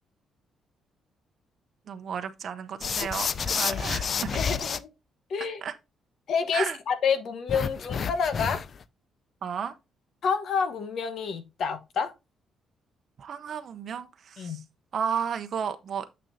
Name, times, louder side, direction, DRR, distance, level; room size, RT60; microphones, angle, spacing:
voice 1, 1.9-4.3 5.4-5.7 6.5-6.8 9.4-9.7 13.2-14.6 14.9-16.0, right 7 dB, 55° right, 0.6 m, -33 dB
sound 1, 2.8-4.8 7.5-8.8, left 6 dB, 50° left, 0.4 m, -30 dB
voice 2, 3.7-4.9 5.3-5.6 6.3-8.6 10.2-12.1 14.4-14.6, left 6 dB, 65° left, 1.1 m, -29 dB
6.9 x 6.2 x 2.6 m
cardioid pair, 90°, 0 cm